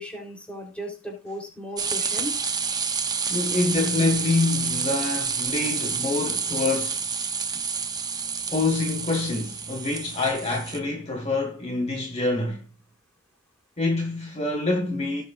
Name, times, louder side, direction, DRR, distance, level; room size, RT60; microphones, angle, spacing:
voice 1, 0.0-2.3, equal, 5° left, 3.7 m, -36 dB
sound 1, 1.8-10.8, right 5 dB, 20° right, 0.8 m, -29 dB
voice 2, 3.3-7.0 8.5-12.6 13.8-15.2, left 2 dB, 30° left, 1.7 m, -26 dB
17.0 x 7.6 x 2.6 m
head